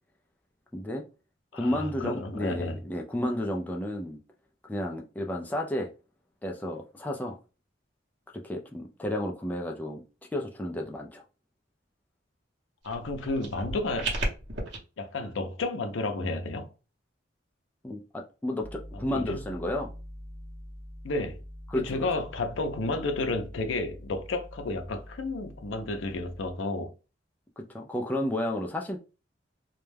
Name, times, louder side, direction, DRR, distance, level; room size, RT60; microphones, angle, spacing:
voice 1, 0.7-1.0 1.5-4.2 4.6-5.9 6.4-7.4 8.3-10.0 10.3-11.2 17.8-19.9 21.7-22.1 27.6-29.0, left 1 dB, 10° left, 0.3 m, -32 dB
voice 2, 1.5-2.8 12.8-14.1 15.0-16.7 19.1-19.4 21.0-21.4 21.7-26.9, left 2 dB, 80° left, 0.5 m, -31 dB
sound 1, 12.8-14.8, right 2 dB, 60° right, 0.8 m, -34 dB
sound 2, 18.6-26.5, equal, 30° right, 0.8 m, -45 dB
2.2 x 2.1 x 3.2 m
head